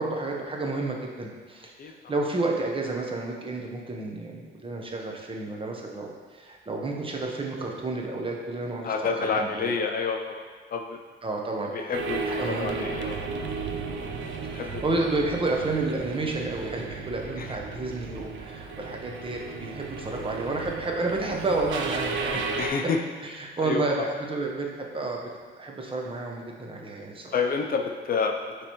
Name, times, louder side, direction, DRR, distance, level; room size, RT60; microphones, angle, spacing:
voice 1, 0.0-8.9 9.2-9.7 11.2-11.7 12.2-12.8 14.4-22.4 23.4-25.2 25.6-27.3, right 2 dB, 25° right, 0 dB, 1.0 m, -30 dB
voice 2, 1.8-2.1 8.8-10.4 10.7-11.0 11.7-13.3 14.5-14.8 17.4-17.5 20.0-20.3 22.6-23.0 23.4-24.1 27.3-28.3, left 5 dB, 45° left, 3 dB, 0.5 m, -29 dB
sound 1, 11.9-22.7, right 4 dB, 75° right, 0.7 m, -34 dB
9.5 x 3.3 x 3.1 m, 1.5 s
cardioid pair, 90°, 20 cm